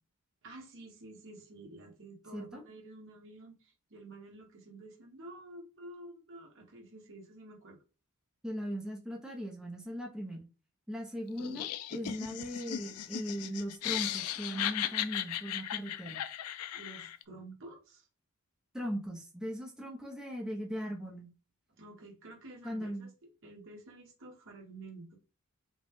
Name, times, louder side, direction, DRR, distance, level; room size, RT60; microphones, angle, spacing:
voice 1, 0.4-7.8 16.7-18.1 21.7-23.1 23.4-25.2, right 2 dB, 60° right, 1.5 m, -50 dB
voice 2, 2.3-2.6 8.4-10.5 10.9-16.2 18.7-21.3 22.6-23.1, equal, 5° right, 0.8 m, -39 dB
Laughter, 11.4-17.2, left 11 dB, 80° left, 0.4 m, -37 dB
5.1 x 2.3 x 3.6 m
head